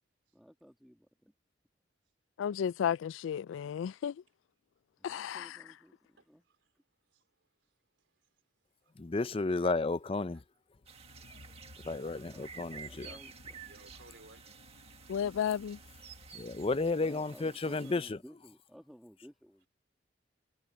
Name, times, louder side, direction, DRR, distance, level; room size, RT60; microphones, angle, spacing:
voice 1, 0.3-1.3 5.0-6.4 11.9-13.3 17.0-19.7, equal, ahead, 2.3 m, -56 dB
voice 2, 2.4-4.1 5.0-5.5 15.1-15.8, left 8 dB, 85° left, 0.3 m, -33 dB
voice 3, 6.2-6.7 7.1-7.3 8.0-8.3 8.8-8.9 9.4-9.6 10.3-10.4 11.3-11.6 11.8-12.3 12.9-13.2 13.7-14.4, right 2 dB, 75° right, 3.7 m, -59 dB
voice 4, 9.0-10.4 11.8-13.1 16.3-18.2, left 3 dB, 30° left, 0.5 m, -32 dB
sound 1, 10.8-17.3, left 2 dB, 60° left, 0.9 m, -57 dB
sound 2, 10.9-18.1, right 6 dB, 30° right, 1.7 m, -52 dB
head